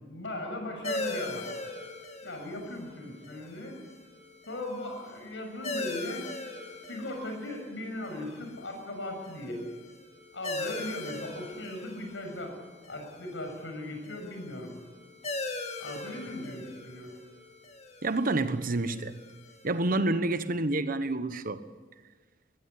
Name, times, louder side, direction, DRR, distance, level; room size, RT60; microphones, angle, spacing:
voice 1, 0.0-1.5 2.2-3.8 4.5-6.2 6.9-9.6 10.3-12.5 12.9-14.7 15.8-17.1, left 1 dB, 85° left, 6.7 m, -38 dB
sound 1, 0.8-20.0, left 2 dB, 35° left, 2.2 m, -41 dB
voice 2, 18.0-19.2 19.6-21.6, right 2 dB, 50° right, 1.2 m, -28 dB
21.5 x 15.5 x 9.8 m
head